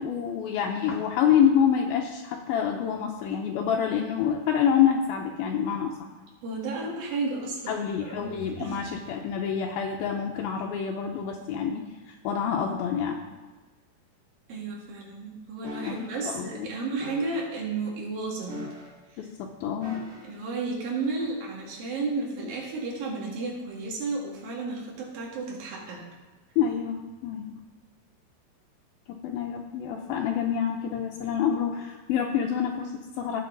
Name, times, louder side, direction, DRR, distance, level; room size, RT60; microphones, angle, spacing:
voice 1, 0.0-6.0 7.7-13.2 15.8-16.7 19.2-20.1 26.6-27.6 29.1-33.4, left 8 dB, 75° left, 1 dB, 2.4 m, -27 dB
voice 2, 6.4-8.3 8.6-8.8 14.5-18.6 20.2-26.0, right 3 dB, 65° right, -3 dB, 3.8 m, -32 dB
sound 1, 15.6-16.1 17.0-17.5 18.5-19.1 19.8-20.4 21.2-21.3, equal, 30° right, 1.7 m, -41 dB
17.0 x 6.2 x 3.9 m, 1.3 s
omnidirectional pair, 4.6 m